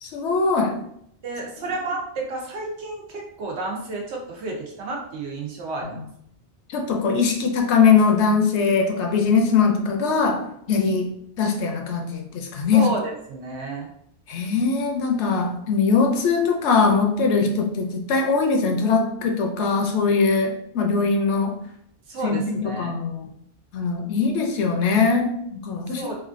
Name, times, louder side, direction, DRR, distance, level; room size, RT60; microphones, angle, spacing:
voice 1, 0.0-0.8 6.0-6.1 6.7-11.1 11.4-12.9 14.3-21.6 22.2-23.3 23.7-26.1, left 5 dB, 80° left, 3 dB, 0.9 m, -21 dB
voice 2, 1.2-6.0 12.7-13.9 22.1-23.0 26.0-26.1, right 3 dB, 75° right, -1 dB, 1.0 m, -31 dB
3.1 x 2.4 x 2.5 m, 0.71 s
omnidirectional pair, 1.1 m